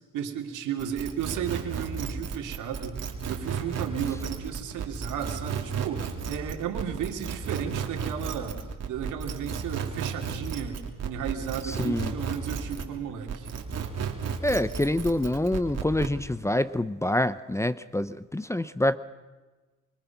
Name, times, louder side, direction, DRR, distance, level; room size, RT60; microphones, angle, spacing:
voice 1, 0.1-8.6 8.9-13.5, right 8 dB, 85° right, 4 dB, 3.0 m, -34 dB
sound 1, 0.8-13.0 13.3-16.1, right 6 dB, 55° right, 3.2 m, -33 dB
voice 2, 11.7-12.1 14.4-19.0, left 1 dB, 10° left, 15 dB, 0.7 m, -26 dB
25.0 x 24.5 x 6.0 m, 1.3 s
cardioid pair, 90°, 30 cm